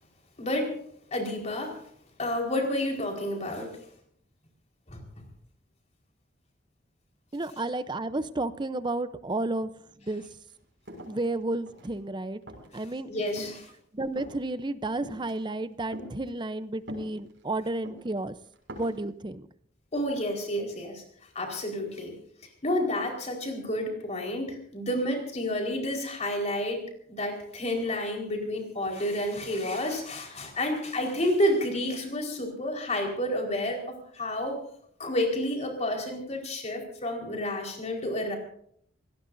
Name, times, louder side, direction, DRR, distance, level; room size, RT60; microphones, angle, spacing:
voice 1, 0.4-0.7 1.1-1.7 2.2-3.8 4.9-5.0 13.1-13.7 19.9-21.0 21.3-22.1 22.6-26.8 27.1-33.8 34.1-34.6 35.0-38.4, left 1 dB, 35° left, 1 dB, 4.6 m, -30 dB
voice 2, 7.3-9.7 10.0-10.2 11.0-12.4 12.7-13.1 13.9-18.3 18.8-19.4, right 2 dB, 25° right, 13 dB, 0.7 m, -32 dB
sound 1, 10.5-10.6 10.9-12.0 12.5-12.8 13.3-13.7 14.1-14.5 15.0-15.3 15.9-16.1 16.9-17.4 17.8-18.1 18.5-19.0, equal, 75° right, 6.2 m, -43 dB
28.0 x 17.5 x 2.7 m, 0.65 s
head